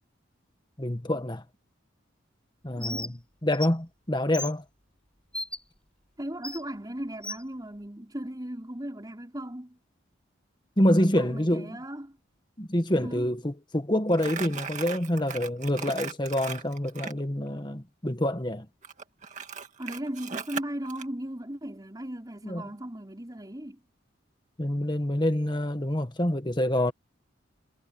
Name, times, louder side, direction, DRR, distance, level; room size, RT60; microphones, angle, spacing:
voice 1, 0.8-1.4 2.6-4.6 10.8-11.8 12.6-18.7 22.4-22.7 24.6-26.9, left 1 dB, 20° left, 1.6 m, -27 dB
Bird, 2.8-3.1 3.5-3.7 4.3-4.5 5.3-5.6 6.4-6.6 7.2-7.4, left 1 dB, 5° left, 4.1 m, -34 dB
voice 2, 2.8-3.1 6.2-9.8 10.9-12.2 13.0-13.3 19.8-23.8, right 1 dB, 20° right, 5.2 m, -37 dB
Crumpling crinkling, 14.1-17.2 18.8-21.1, right 5 dB, 35° right, 2.2 m, -37 dB
head